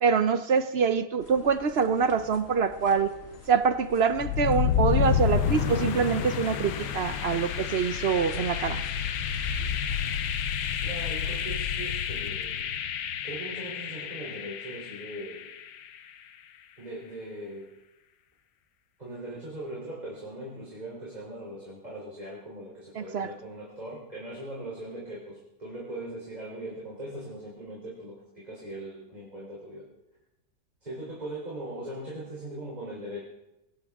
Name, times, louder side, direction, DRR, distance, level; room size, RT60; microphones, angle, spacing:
voice 1, 0.0-3.1 3.5-8.8 23.0-23.3, right 6 dB, 55° right, 12 dB, 0.7 m, -25 dB
sound 1, 1.2-10.3, equal, 40° left, 2.4 m, -47 dB
sound 2, 4.1-16.0, left 8 dB, 85° left, 1.5 m, -30 dB
voice 2, 10.8-12.7 13.2-15.4 16.8-17.7 19.0-29.9 30.8-33.2, right 1 dB, 25° right, -6 dB, 3.7 m, -40 dB
21.5 x 18.0 x 3.6 m, 0.92 s
omnidirectional pair, 1.7 m